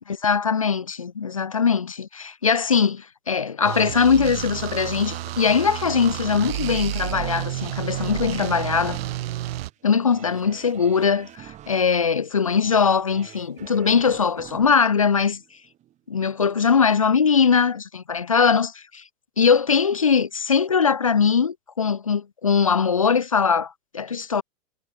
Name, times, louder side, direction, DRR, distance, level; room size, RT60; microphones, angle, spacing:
voice 1, 0.1-9.0 9.8-15.4 16.1-19.0 19.4-24.4, left 6 dB, 30° left, 0.3 m, -21 dB
sound 1, 3.6-9.7, right 14 dB, 45° right, 4.5 m, -30 dB
sound 2, 5.0-16.0 16.4-16.5, right 13 dB, 15° right, 6.5 m, -46 dB
supercardioid pair, 175°, 40 cm